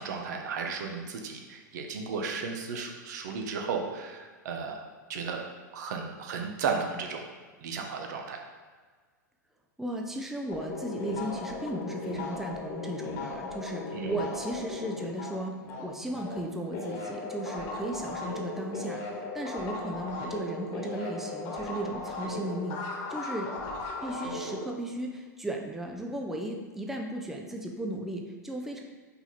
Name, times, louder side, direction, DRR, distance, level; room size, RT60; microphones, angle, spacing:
voice 1, 0.0-4.8 5.1-5.4 5.7-7.2 7.6-8.4 13.9-14.2, right 5 dB, 65° right, 3 dB, 1.0 m, -34 dB
voice 2, 9.8-22.8 23.1-23.6 24.0-28.8, right 1 dB, 5° right, 1 dB, 0.6 m, -36 dB
sound 1, 10.5-16.4 16.7-24.7, left 3 dB, 45° left, 1.5 m, -37 dB
5.9 x 3.8 x 4.2 m, 1.5 s
hypercardioid pair, 105°, 10 cm